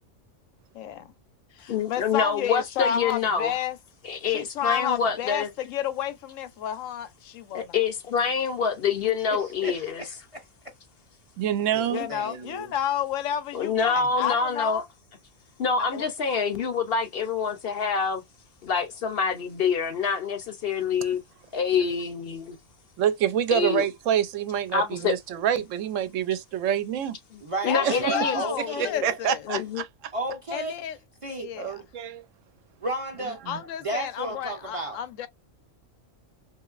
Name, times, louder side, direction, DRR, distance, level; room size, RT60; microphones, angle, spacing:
voice 1, 0.7-1.1 1.5-3.8 4.3-7.7 11.9-14.9 15.9-16.0 27.7-29.4 30.5-31.0 31.4-31.8 33.5-35.3, left 9 dB, 85° left, 1.0 m, -31 dB
voice 2, 1.7-3.5 4.0-5.5 7.5-10.0 13.5-14.8 15.6-18.2 18.6-21.2 21.5-22.6 23.5-23.8 24.7-25.2 27.6-28.4 28.8-29.1 29.5-29.8, left 6 dB, 60° left, 0.7 m, -26 dB
voice 3, 9.3-10.5 11.7-12.7 14.0-14.1 27.4-28.1 28.3-28.9 30.1-30.8 31.2-31.5 32.8-33.4 33.8-35.0, right 1 dB, 35° right, 0.6 m, -33 dB
voice 4, 11.4-12.1 23.0-27.2 27.8-28.4 28.8-30.1 31.6-32.3 33.4-33.6, right 9 dB, 80° right, 0.9 m, -27 dB
3.0 x 2.5 x 2.3 m
omnidirectional pair, 1.3 m